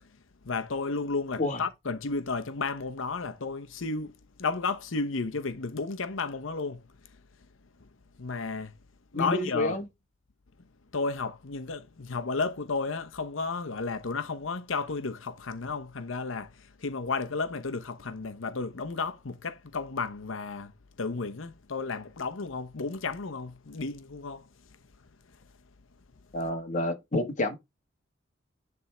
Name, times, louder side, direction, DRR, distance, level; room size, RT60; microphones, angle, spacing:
voice 1, 0.4-4.1 4.4-6.8 8.2-8.7 9.1-9.8 10.9-20.7 21.0-24.5, left 4 dB, 70° left, 0.9 m, -33 dB
voice 2, 9.1-9.8 26.3-27.5, left 1 dB, 40° left, 1.5 m, -29 dB
9.8 x 3.6 x 4.4 m
head